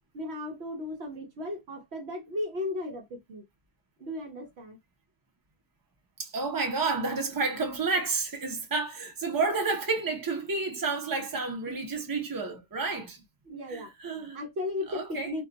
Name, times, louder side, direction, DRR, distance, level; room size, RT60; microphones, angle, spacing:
voice 1, 0.1-3.4 4.0-4.8 11.7-11.8 12.0-12.1 13.4-15.4, left 2 dB, 65° right, 1.0 m, -36 dB
voice 2, 6.2-13.2 13.7-14.4 14.9-15.3, right 4 dB, 25° right, 0.6 m, -30 dB
2.3 x 2.2 x 3.8 m
omnidirectional pair, 1.2 m